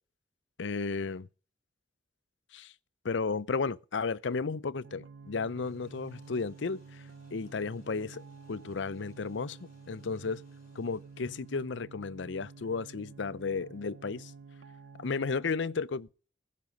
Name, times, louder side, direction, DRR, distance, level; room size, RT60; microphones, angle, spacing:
voice 1, 0.6-1.3 2.5-2.7 3.0-7.0 7.3-10.4 10.7-14.3 15.0-16.3, left 4 dB, 75° left, 0.6 m, -34 dB
sound 1, 4.8-15.5, right 4 dB, 80° right, 0.6 m, -51 dB
sound 2, 5.5-12.0, left 1 dB, 45° left, 5.8 m, -65 dB
15.5 x 7.6 x 5.3 m
head